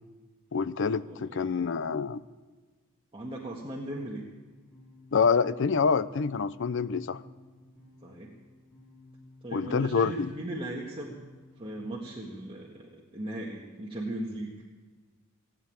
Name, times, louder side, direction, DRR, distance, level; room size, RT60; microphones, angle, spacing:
voice 1, 0.5-2.2 5.1-7.2 9.5-10.3, left 5 dB, 60° left, 15 dB, 0.6 m, -26 dB
voice 2, 1.0-1.6 3.1-4.2 8.0-8.3 9.4-11.2 11.6-14.5, right 1 dB, 25° right, -3 dB, 1.7 m, -38 dB
sound 1, 4.4-13.0, left 2 dB, ahead, 4.9 m, -56 dB
18.0 x 8.9 x 8.8 m, 1.3 s
head